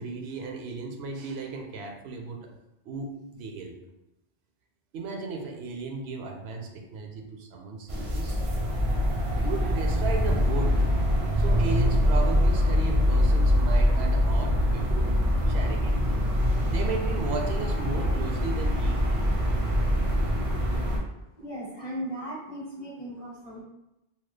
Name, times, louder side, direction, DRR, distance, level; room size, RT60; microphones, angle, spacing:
voice 1, 0.0-2.5 2.8-3.8 4.9-8.4 9.3-11.1 11.4-15.2 15.5-16.2 16.7-19.2, right 4 dB, 85° right, 2 dB, 0.8 m, -35 dB
sound 1, 7.9-21.0, equal, 45° right, 0.5 m, -24 dB
voice 2, 21.4-23.6, equal, 35° left, -4 dB, 0.8 m, -37 dB
2.9 x 2.3 x 3.2 m, 0.90 s
omnidirectional pair, 1.0 m